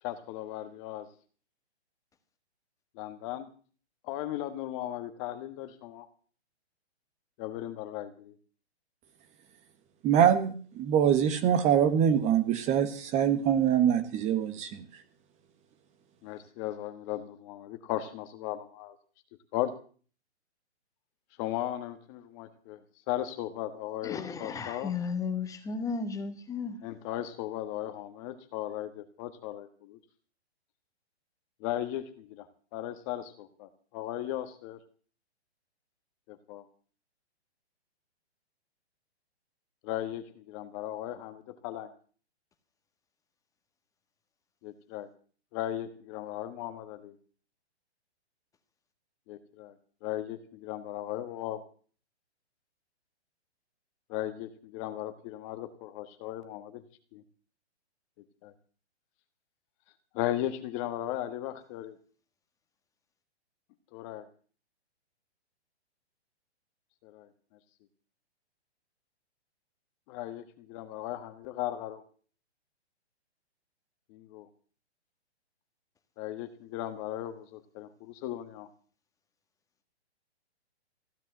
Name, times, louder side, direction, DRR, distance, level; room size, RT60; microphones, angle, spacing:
voice 1, 0.0-1.1 2.9-3.5 4.0-6.0 7.4-8.3 16.2-19.0 19.5-19.7 21.4-22.8 23.1-24.9 26.8-30.0 31.6-32.5 32.7-34.8 36.3-36.6 39.8-41.9 44.6-45.1 45.5-47.1 49.3-49.7 50.0-51.6 54.1-56.8 57.1-57.2 58.4-58.5 60.1-61.9 63.9-64.3 67.0-67.3 70.1-72.0 74.1-74.5 76.2-78.7, left 13 dB, 30° left, 1.5 m, -37 dB
voice 2, 10.0-14.8, right 9 dB, 20° right, 1.3 m, -24 dB
voice 3, 24.0-26.8, left 5 dB, 10° left, 1.7 m, -34 dB
15.5 x 10.5 x 7.8 m
hypercardioid pair, 145°, 34 cm